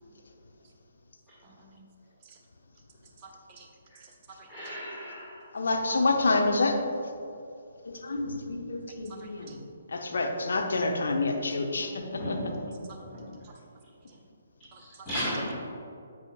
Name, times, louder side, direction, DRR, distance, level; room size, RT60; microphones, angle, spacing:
voice 1, 1.4-1.9 2.2-2.4 3.2-3.7 4.0-4.5 8.1-8.3 9.0-9.6 11.7-12.2 12.9-13.0 14.7-15.1, right 4 dB, 25° right, 0 dB, 1.1 m, -52 dB
voice 2, 4.5-5.5 9.4-9.6 11.7-11.8 12.2-13.3 15.0-15.5, equal, 15° left, -10 dB, 1.9 m, -36 dB
voice 3, 5.5-6.8 7.8-9.6 9.9-12.5, left 3 dB, 60° left, 2 dB, 0.9 m, -28 dB
10.5 x 8.0 x 2.4 m, 2.5 s
figure-of-eight pair, 135°, 0 cm